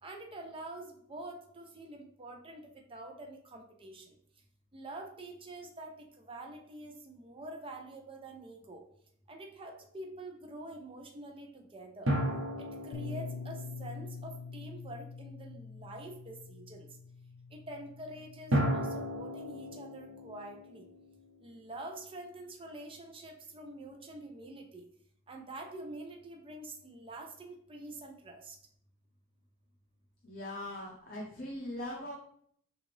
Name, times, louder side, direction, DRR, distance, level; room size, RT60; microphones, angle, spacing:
voice 1, 0.0-2.6 2.9-4.1 4.7-8.8 9.3-12.1 12.6-16.9 17.5-18.9 19.1-20.8 21.4-24.8 25.3-28.6, right 2 dB, 25° right, 2 dB, 0.6 m, -46 dB
sound 1, 12.1-14.9 18.5-21.9, equal, 75° right, 1.1 m, -35 dB
Bass guitar, 12.9-19.2, left 4 dB, 80° left, 0.3 m, -45 dB
voice 2, 30.2-32.1, left 1 dB, 45° left, -2 dB, 0.8 m, -40 dB
6.2 x 2.5 x 3.2 m, 0.66 s
head